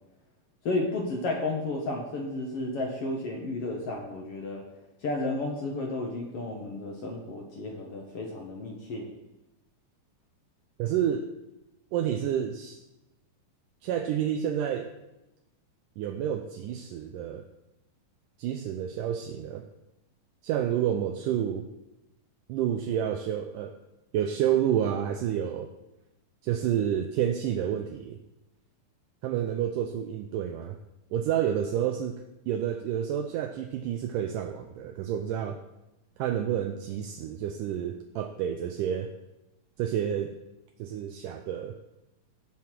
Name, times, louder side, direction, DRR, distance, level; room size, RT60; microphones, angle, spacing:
voice 1, 0.7-4.6 5.0-9.1, left 2 dB, 55° left, 0 dB, 1.8 m, -32 dB
voice 2, 10.8-11.2 11.9-12.8 13.8-14.9 16.0-17.5 18.4-19.7 20.4-21.6 22.5-23.8 24.1-25.7 26.4-28.2 29.2-30.8 31.1-35.6 36.2-39.1 39.8-40.4 40.8-41.8, right 9 dB, 80° right, 4 dB, 2.1 m, -29 dB
17.0 x 5.6 x 4.5 m, 0.94 s
omnidirectional pair, 4.0 m